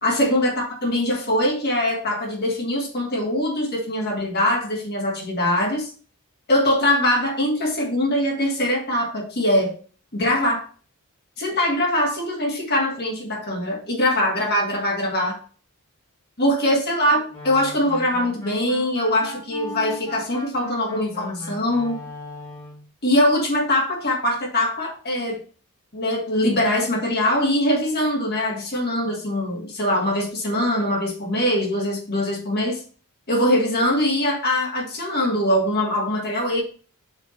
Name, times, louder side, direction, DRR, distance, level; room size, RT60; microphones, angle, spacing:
voice 1, 0.0-5.9 6.5-9.8 10.1-10.7 11.4-15.4 16.4-22.0 23.0-25.4 25.9-32.8 33.3-36.6, left 1 dB, 45° left, -1 dB, 2.1 m, -22 dB
sound 1, 17.3-22.9, equal, 20° left, 1.8 m, -37 dB
5.7 x 3.4 x 5.8 m, 0.40 s
head